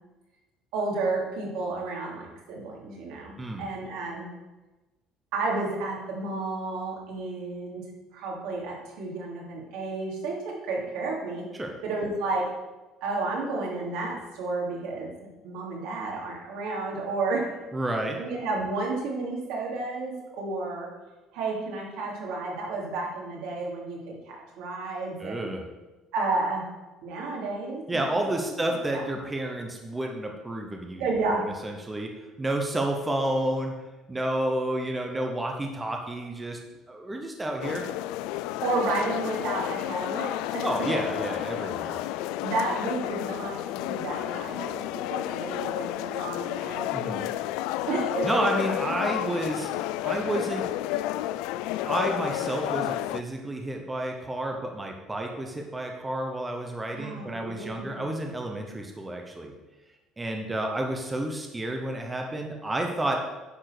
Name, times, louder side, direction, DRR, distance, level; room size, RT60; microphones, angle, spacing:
voice 1, 0.7-4.3 5.3-7.8 8.1-11.4 11.8-12.4 13.0-15.1 15.4-17.5 18.2-20.9 21.3-25.5 26.1-26.6 27.0-28.0 28.5-28.6 31.0-31.5 38.6-40.6 42.4-44.8 45.1-46.9 47.9-48.3 56.9-58.1, right 3 dB, 80° right, -2 dB, 2.8 m, -31 dB
voice 2, 17.7-18.2 25.2-25.6 27.9-31.0 31.3-33.7 34.1-36.6 36.9-37.8 40.6-42.0 46.9-47.3 48.2-49.7 50.0-50.7 51.8-59.5 60.2-63.2, right 1 dB, 10° right, 2 dB, 0.7 m, -30 dB
sound 1, 37.6-53.2, left 14 dB, 90° left, 0.3 m, -31 dB
10.0 x 4.3 x 6.6 m, 1.1 s
cardioid pair, 180°, 0 cm